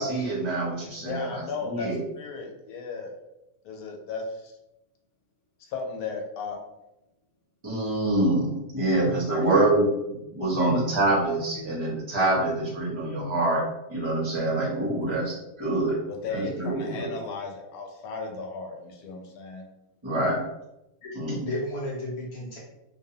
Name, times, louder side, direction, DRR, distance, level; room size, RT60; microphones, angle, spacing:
voice 1, 0.0-1.3 1.7-2.0 7.6-9.8 10.3-13.6 13.9-16.0 16.3-17.1 20.0-20.4 21.1-21.4, right 2 dB, 40° right, -6 dB, 0.4 m, -25 dB
voice 2, 1.0-3.1 3.6-4.5 5.6-6.6 15.0-15.1 16.1-19.6, left 4 dB, 85° left, 2 dB, 1.1 m, -35 dB
voice 3, 9.0-9.6 10.5-10.8 11.5-11.7 21.0-22.6, left 1 dB, 50° left, -4 dB, 0.9 m, -34 dB
2.6 x 2.0 x 2.7 m, 0.92 s
omnidirectional pair, 1.6 m